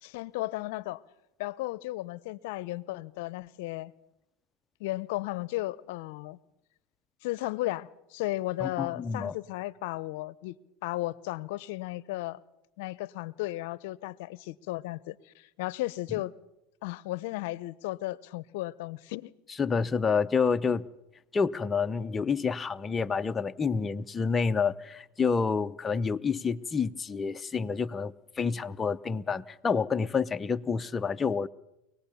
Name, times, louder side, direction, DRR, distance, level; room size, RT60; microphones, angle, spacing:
voice 1, 0.0-1.0 1.4-3.9 4.8-6.4 7.2-10.6 10.8-12.4 12.8-16.3 16.8-19.3, left 18 dB, 70° left, 0.7 m, -35 dB
voice 2, 8.6-9.4 19.6-20.9 21.3-31.5, left 5 dB, 20° left, 0.7 m, -28 dB
24.5 x 18.5 x 6.9 m
supercardioid pair, 110°, 0 cm